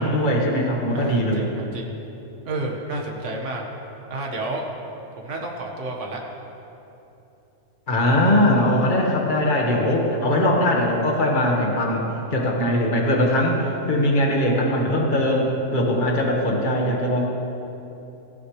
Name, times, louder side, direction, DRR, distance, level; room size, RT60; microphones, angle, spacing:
voice 1, 0.0-1.5 7.9-12.0 12.3-17.3, left 1 dB, 35° left, -1 dB, 1.8 m, -21 dB
voice 2, 0.9-1.9 2.4-3.7 4.1-4.6 5.2-6.2, right 2 dB, 55° right, 0 dB, 1.9 m, -30 dB
19.0 x 15.0 x 3.3 m, 2.9 s
omnidirectional pair, 1.5 m